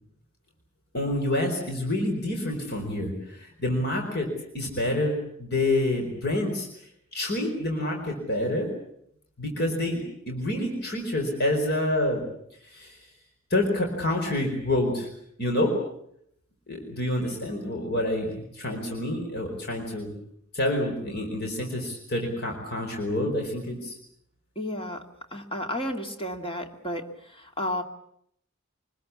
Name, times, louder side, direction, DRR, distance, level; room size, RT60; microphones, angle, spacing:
voice 1, 0.9-6.7 7.1-8.7 9.4-12.2 12.6-13.0 13.5-15.1 15.4-15.7 16.7-20.1 20.5-24.0, left 1 dB, 50° left, 2 dB, 5.0 m, -28 dB
voice 2, 24.6-25.0 25.3-27.8, left 1 dB, 25° left, 4 dB, 2.4 m, -32 dB
25.0 x 20.5 x 8.5 m, 0.71 s
head